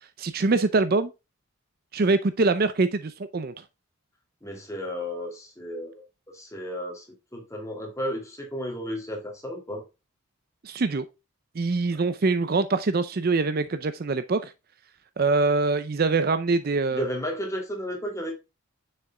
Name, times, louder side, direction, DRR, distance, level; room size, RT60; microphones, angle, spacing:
voice 1, 0.2-1.1 1.9-3.6 10.6-11.0 11.6-14.5 15.2-17.0, right 3 dB, 45° right, 0.4 m, -24 dB
voice 2, 4.4-6.0 6.3-7.0 7.3-9.8 16.9-18.3, equal, 15° left, 2.4 m, -33 dB
6.9 x 6.5 x 2.2 m
head